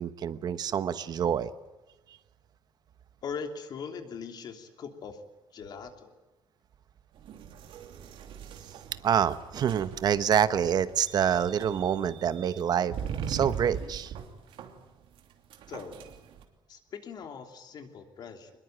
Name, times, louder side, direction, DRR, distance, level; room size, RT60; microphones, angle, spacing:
voice 1, 0.0-1.5 9.0-12.9 13.3-14.1, right 8 dB, 50° right, 13 dB, 1.0 m, -27 dB
voice 2, 3.2-5.2 5.5-6.1 15.7-16.0 16.7-18.5, left 6 dB, 50° left, 6 dB, 3.0 m, -40 dB
sound 1, 7.1-16.4, right 7 dB, 80° right, 3.0 m, -41 dB
23.5 x 21.0 x 9.0 m, 1.1 s
cardioid pair, 155°, 9 cm